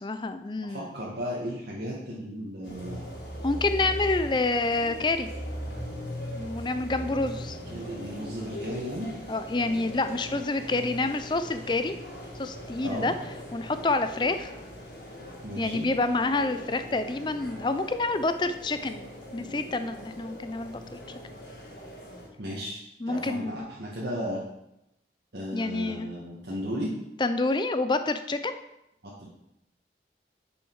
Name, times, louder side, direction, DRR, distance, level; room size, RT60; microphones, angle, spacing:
voice 1, 0.0-0.9 3.4-5.3 6.4-7.6 9.3-12.0 12.4-13.1 13.5-14.5 15.6-20.8 23.0-23.7 25.5-26.1 27.2-28.6, left 2 dB, 25° left, 10 dB, 0.4 m, -28 dB
voice 2, 0.6-3.0 7.7-9.1 12.8-13.1 15.4-15.9 22.4-22.8 23.1-24.4 25.3-26.9 29.0-29.3, equal, 75° right, -6 dB, 1.8 m, -35 dB
sound 1, 2.6-22.3, equal, 85° left, 3.3 m, -40 dB
9.1 x 6.5 x 4.7 m, 0.86 s
head